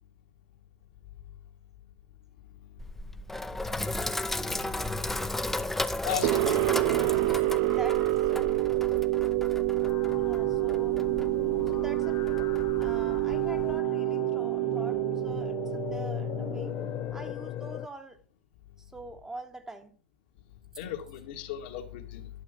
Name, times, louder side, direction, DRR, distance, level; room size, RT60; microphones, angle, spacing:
Sink (filling or washing), 2.8-13.8, left 1 dB, 5° left, 0.7 m, -35 dB
voice 1, 5.0-5.9 7.3-8.5 10.1-11.0 11.6-12.5 12.8-16.7 17.1-18.2 18.8-20.0, right 2 dB, 10° right, 1.2 m, -44 dB
voice 2, 6.0-6.6 20.8-22.2, left 9 dB, 70° left, 2.2 m, -35 dB
sound 1, 6.2-17.1, right 19 dB, 55° right, 0.4 m, -28 dB
sound 2, 9.8-17.9, left 12 dB, 40° left, 0.6 m, -38 dB
12.0 x 6.4 x 5.3 m
hypercardioid pair, 110°, 5 cm